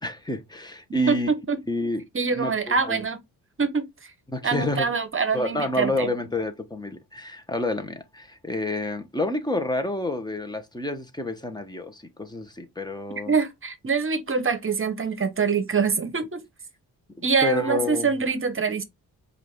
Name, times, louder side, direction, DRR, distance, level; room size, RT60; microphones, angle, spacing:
voice 1, 0.0-1.3 1.7-2.0 2.3-3.0 4.3-4.9 5.3-13.3 17.4-18.1, left 1 dB, 10° left, 1.2 m, -29 dB
voice 2, 1.1-1.6 2.1-3.2 3.6-4.1 4.4-6.1 13.3-16.4 17.2-18.8, right 5 dB, 35° right, 1.1 m, -25 dB
5.1 x 2.7 x 3.6 m
supercardioid pair, 60°, 38 cm